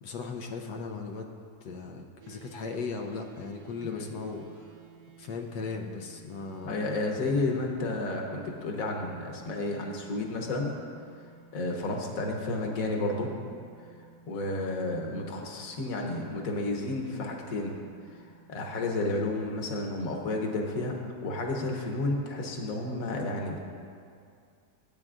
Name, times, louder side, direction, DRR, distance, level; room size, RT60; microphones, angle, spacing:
voice 1, 0.0-1.3 1.6-4.7 5.2-6.9, left 4 dB, 90° left, 1 dB, 1.3 m, -37 dB
sound 1, 2.2-19.7, right 6 dB, 85° right, 1.4 m, -55 dB
voice 2, 6.6-10.7 11.5-13.3 14.3-17.8 18.5-23.6, left 2 dB, 60° left, 1 dB, 1.5 m, -31 dB
16.0 x 8.8 x 2.5 m, 2.3 s
omnidirectional pair, 1.7 m